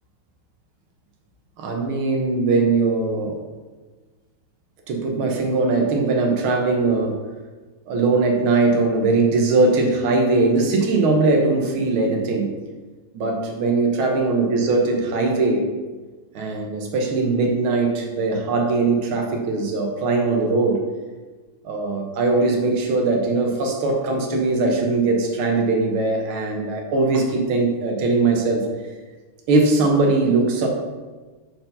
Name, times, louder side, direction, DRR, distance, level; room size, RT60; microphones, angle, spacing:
voice 1, 1.6-3.4 4.9-7.2 7.9-12.5 13.1-15.7 16.4-20.8 21.6-28.7 29.5-30.7, right 3 dB, 75° right, 2 dB, 2.0 m, -20 dB
7.4 x 4.5 x 5.4 m, 1.3 s
omnidirectional pair, 2.4 m